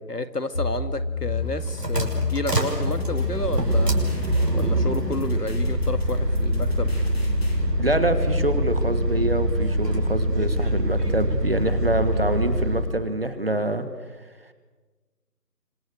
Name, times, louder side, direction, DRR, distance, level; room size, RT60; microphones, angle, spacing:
voice 1, 0.1-3.9 4.5-6.9, left 2 dB, 75° left, 11 dB, 2.1 m, -31 dB
sound 1, 0.5-12.4, left 3 dB, 25° left, 1.8 m, -32 dB
sound 2, 1.4-12.9, right 1 dB, 75° right, 6.1 m, -24 dB
sound 3, 1.9-7.6, left 1 dB, 40° left, 3.9 m, -45 dB
voice 2, 7.8-13.9, right 1 dB, 35° right, 10 dB, 1.9 m, -26 dB
26.5 x 26.0 x 6.6 m, 1.3 s
figure-of-eight pair, 170°, 48 cm